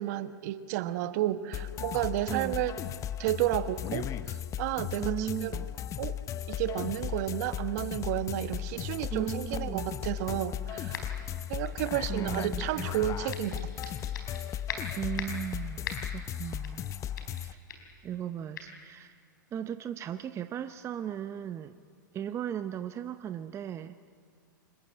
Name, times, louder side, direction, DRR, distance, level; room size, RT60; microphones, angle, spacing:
voice 1, 0.0-2.8 3.2-5.6 6.0-6.2 6.5-11.0 11.5-13.9, right 13 dB, 55° right, 12 dB, 1.2 m, -32 dB
sound 1, 1.5-17.5, left 10 dB, 30° left, 0.8 m, -36 dB
voice 2, 2.3-2.6 5.0-5.7 9.1-9.9 12.1-12.9 15.0-16.9 17.4-17.6 18.0-19.2 19.5-21.7 22.1-24.0, right 9 dB, 25° right, 11 dB, 0.7 m, -36 dB
sound 2, 10.9-11.3 11.6-12.8 13.3-14.4 14.7-15.5 15.8-16.2 16.6-16.9 17.2-17.4 17.7-17.9 18.5-18.7, left 6 dB, 70° left, 4.3 m, -40 dB
25.0 x 21.5 x 8.6 m, 2.3 s
hypercardioid pair, 110°, 11 cm